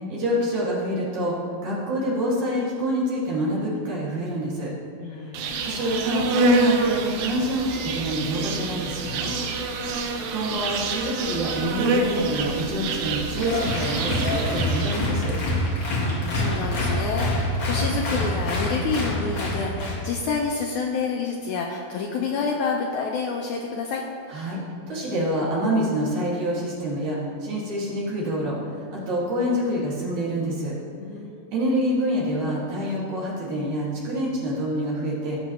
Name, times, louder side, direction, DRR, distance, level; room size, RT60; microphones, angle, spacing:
voice 1, 0.1-1.4 1.6-4.7 5.6-9.3 10.0-10.1 10.3-15.3 24.3-24.6 24.9-30.7 31.5-35.4, equal, 60° right, -6 dB, 3.2 m, -27 dB
voice 2, 5.0-5.7 15.9-24.0 31.0-31.5, left 5 dB, 80° left, 0 dB, 1.8 m, -29 dB
Insect, 5.3-15.2, right 2 dB, 80° right, 2.4 m, -26 dB
Applause, 13.4-20.0, left 1 dB, 45° left, 2.2 m, -26 dB
17.0 x 7.1 x 3.0 m, 2.2 s
omnidirectional pair, 4.1 m